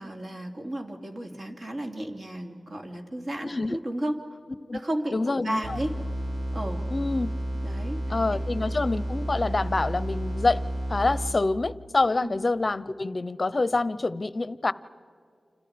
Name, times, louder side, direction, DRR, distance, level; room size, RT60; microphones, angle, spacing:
voice 1, 0.0-4.2 4.7-5.9 6.5-6.8 7.6-8.0 8.3-8.4 12.2-12.4, right 1 dB, 45° right, 2 dB, 3.0 m, -33 dB
voice 2, 3.4-3.8 4.7-4.8 5.1-5.8 6.9-7.3 8.1-10.6 10.9-14.7, left 3 dB, 40° left, 17 dB, 0.7 m, -26 dB
sound 1, 5.6-11.7, equal, 65° right, 3.5 m, -31 dB
30.0 x 27.0 x 5.2 m, 2.2 s
wide cardioid pair, 75°, 0 cm